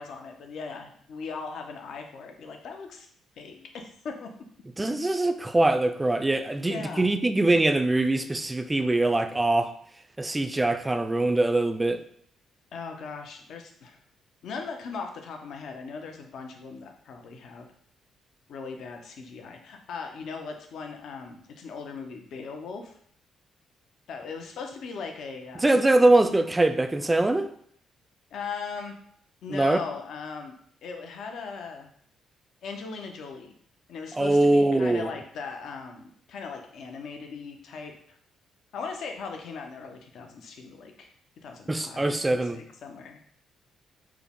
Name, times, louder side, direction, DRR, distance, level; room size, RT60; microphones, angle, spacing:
voice 1, 0.0-3.1 3.4-4.3 6.6-7.1 12.7-14.0 14.4-17.7 18.5-23.0 24.1-25.6 28.3-28.9 29.4-30.5 30.8-31.9 32.6-33.5 33.9-38.2 38.7-41.1 41.4-43.2, left 5 dB, 70° left, 4 dB, 0.5 m, -39 dB
voice 2, 4.8-9.7 10.2-12.0 25.6-27.5 29.5-29.8 34.1-35.1 41.7-42.6, right 2 dB, 15° right, 9 dB, 0.3 m, -23 dB
4.6 x 2.1 x 3.5 m, 0.63 s
cardioid pair, 90°, 0 cm